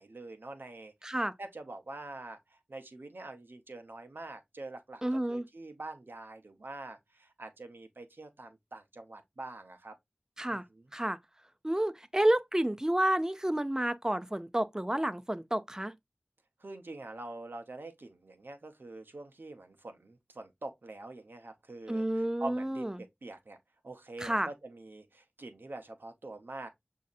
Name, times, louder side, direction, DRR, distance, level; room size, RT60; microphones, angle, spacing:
voice 1, 0.0-10.0 10.5-10.6 16.6-22.0 22.4-23.6 23.8-26.7, right 2 dB, 80° right, 0.8 m, -45 dB
voice 2, 1.0-1.3 5.0-5.4 10.4-10.6 10.9-11.2 11.6-15.9 21.9-23.0 24.2-24.5, right 1 dB, 15° right, 0.5 m, -30 dB
6.2 x 2.7 x 2.3 m
wide cardioid pair, 40°, 4 cm